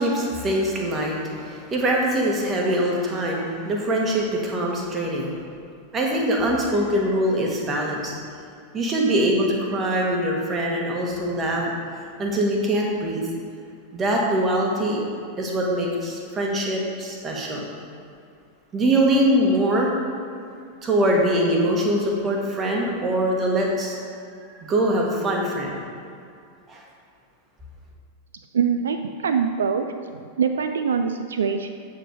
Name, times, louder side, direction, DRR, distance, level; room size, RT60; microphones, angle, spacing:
voice 1, 0.0-5.4 5.9-8.1 8.7-11.7 12.2-13.2 13.9-15.0 15.4-17.7 18.7-19.9 20.8-24.0 24.5-25.7 26.7-26.8, right 1 dB, 20° right, -1 dB, 1.6 m, -23 dB
voice 2, 28.5-29.0 29.2-29.9 30.4-31.7, right 6 dB, 65° right, 7 dB, 0.4 m, -23 dB
8.6 x 5.2 x 5.1 m, 2.4 s
figure-of-eight pair, 90°, 0 cm